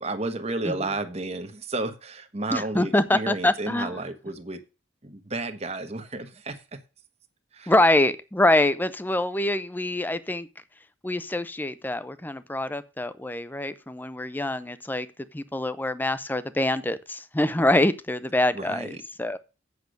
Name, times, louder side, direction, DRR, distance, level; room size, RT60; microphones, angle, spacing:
voice 1, 0.0-4.6 5.0-6.8 7.5-7.7 18.5-19.0, right 2 dB, 35° right, 1.2 m, -32 dB
voice 2, 2.5-3.9 7.7-10.5 11.0-15.1 15.3-18.9 19.2-19.4, left 1 dB, 10° left, 0.6 m, -25 dB
8.3 x 6.7 x 6.5 m
head